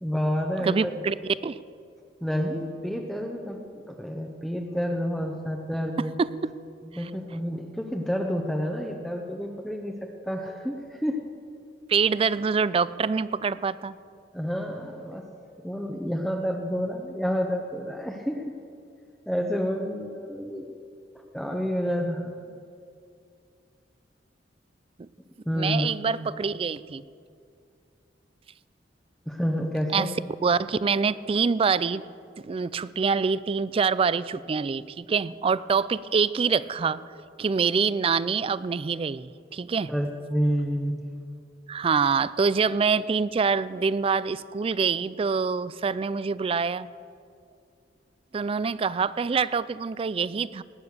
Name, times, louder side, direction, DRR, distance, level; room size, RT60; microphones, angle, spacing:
voice 1, 0.0-0.9 2.2-6.2 6.8-11.2 14.3-15.3 15.6-18.5 19.3-20.7 21.3-22.6 25.5-25.9 29.3-30.1 39.9-41.0, equal, ahead, 1 dB, 0.8 m, -29 dB
voice 2, 0.6-1.1 1.4-1.6 6.2-6.3 11.9-13.9 25.0-25.1 25.5-27.0 29.9-30.1 30.4-32.0 32.4-37.0 37.4-39.9 41.7-46.9 48.3-50.6, right 5 dB, 30° right, 18 dB, 0.3 m, -25 dB
19.0 x 8.9 x 6.6 m, 2.4 s
head